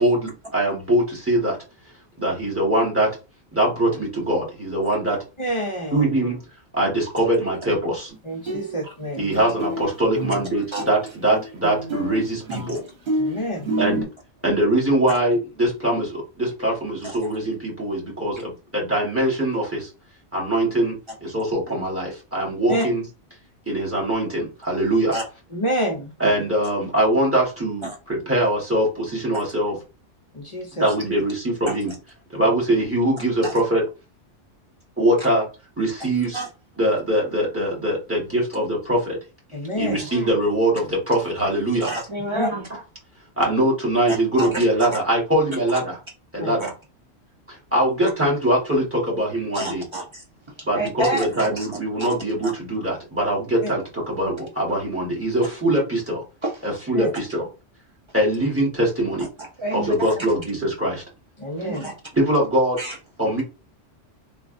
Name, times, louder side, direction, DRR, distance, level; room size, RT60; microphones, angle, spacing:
voice 1, 0.0-1.6 2.2-3.1 3.5-5.2 5.9-6.4 6.7-8.1 9.2-12.8 13.8-14.1 14.4-19.9 20.3-23.0 23.7-25.2 26.2-29.8 30.8-31.9 32.3-33.8 35.0-35.4 35.8-36.4 36.8-39.2 39.8-41.9 43.4-46.0 46.3-46.7 47.5-49.8 50.7-56.2 56.6-57.5 58.1-59.3 59.7-61.0 62.1-62.8 63.2-63.4, right 1 dB, 10° right, 1.1 m, -22 dB
voice 2, 5.4-6.1 8.2-9.3 13.2-13.8 22.7-22.9 25.5-26.1 30.3-30.9 32.4-32.5 39.5-40.0 42.3-42.5 46.4-46.5 53.6-53.7 56.9-57.1 61.4-61.9, equal, 40° left, 0.4 m, -28 dB
sound 1, 8.1-8.2 8.5-9.1 9.3-14.0, right 1 dB, 60° right, 1.4 m, -28 dB
voice 3, 41.8-42.7 44.1-44.6 46.6-46.7 49.5-50.2 50.7-51.7 52.4-52.5 56.4-56.5 59.4-60.3 61.6-61.9 62.8-63.0, right 2 dB, 35° right, 0.5 m, -29 dB
3.2 x 2.3 x 2.5 m
omnidirectional pair, 1.3 m